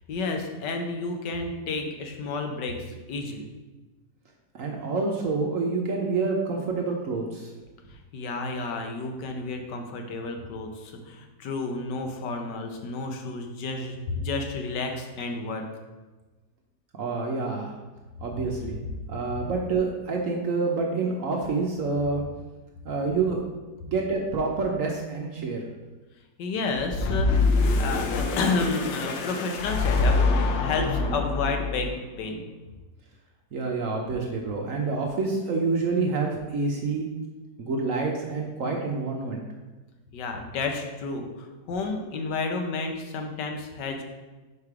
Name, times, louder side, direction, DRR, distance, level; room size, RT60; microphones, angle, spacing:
voice 1, 0.1-2.8 3.1-3.5 8.1-15.7 26.4-31.9 32.2-32.5 40.1-44.0, left 3 dB, 75° left, 4 dB, 1.4 m, -31 dB
voice 2, 4.5-7.5 17.0-17.7 18.2-18.8 19.1-22.2 22.8-23.4 23.8-25.6 33.5-37.1 37.6-39.4, right 4 dB, 60° right, 0 dB, 0.9 m, -27 dB
sound 1, 26.7-31.9, left 3 dB, 90° left, 1.4 m, -25 dB
5.0 x 4.7 x 4.7 m, 1.2 s
omnidirectional pair, 1.9 m